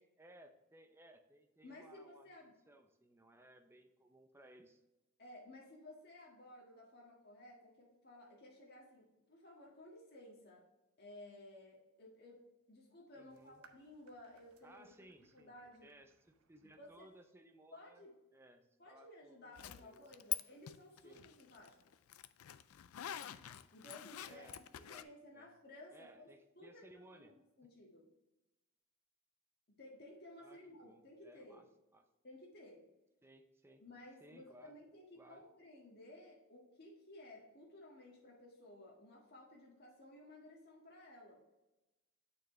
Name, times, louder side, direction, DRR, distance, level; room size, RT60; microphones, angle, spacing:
voice 1, 0.0-2.4 2.7-4.8 13.2-13.6 14.6-15.6 15.8-18.1 18.3-20.2 21.0-21.2 22.9-23.3 24.2-25.0 25.3-25.5 25.9-27.4 30.4-31.6 31.9-32.0 33.2-33.8 34.2-34.7 35.2-35.4, right 1 dB, 10° right, 6 dB, 0.6 m, -62 dB
voice 2, 1.6-2.5 5.2-10.6 11.0-12.4 12.7-15.0 15.3-15.9 16.6-17.1 17.7-18.1 18.8-21.9 23.7-28.1 29.7-31.7 32.2-32.8 33.8-41.4, left 1 dB, 50° left, -3 dB, 1.8 m, -56 dB
sound 1, 13.3-17.3, right 6 dB, 85° right, 0.7 m, -70 dB
Zipper (clothing), 19.6-20.4 20.7-25.0, left 13 dB, 85° left, 0.4 m, -45 dB
8.9 x 4.7 x 3.2 m, 1.0 s
head